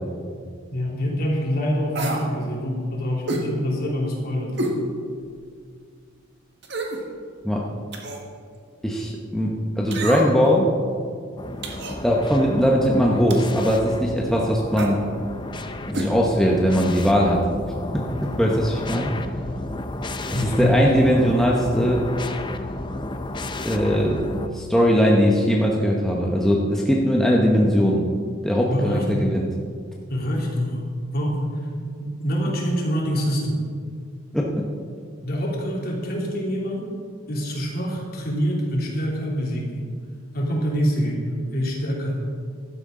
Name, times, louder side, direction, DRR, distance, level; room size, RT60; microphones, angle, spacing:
voice 1, 0.7-4.6 20.3-20.9 28.7-29.0 30.1-30.8 31.1-31.6 32.0-33.6 35.2-37.0 37.3-39.8 40.3-42.2, equal, 45° left, -3 dB, 3.0 m, -25 dB
sound 1, 1.9-2.3 3.3-3.5 4.6-4.8 5.3-5.4 6.6-7.0 7.9-8.3 9.9-10.5 11.6-12.0 13.3-13.6 14.7-15.0 15.9-16.1 16.4-16.5, right 2 dB, 55° right, 1.6 m, -28 dB
voice 2, 8.8-10.7 12.0-15.0 15.9-17.4 17.9-19.1 20.3-22.1 23.6-24.3 24.5-28.0 28.4-29.5 34.3-34.7, equal, ahead, -3 dB, 1.0 m, -20 dB
sound 2, 11.4-24.5, left 2 dB, 20° left, 0.6 m, -32 dB
15.5 x 12.0 x 3.8 m, 2.1 s
head